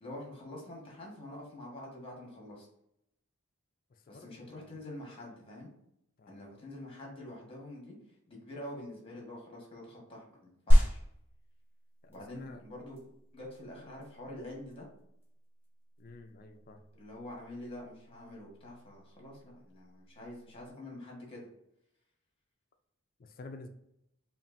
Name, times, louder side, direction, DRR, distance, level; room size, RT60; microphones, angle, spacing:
voice 1, 0.0-2.7 4.1-5.7 6.3-8.0 8.3-11.0 12.1-13.0 13.3-14.9 17.0-21.5, left 1 dB, 25° left, -2 dB, 1.4 m, -46 dB
voice 2, 3.9-4.6 6.2-6.4 12.0-12.6 16.0-16.9 23.2-23.7, left 3 dB, 40° left, 6 dB, 0.4 m, -50 dB
sound 1, 10.7-20.7, equal, 10° right, 1.5 m, -32 dB
5.6 x 2.5 x 2.6 m, 0.79 s
head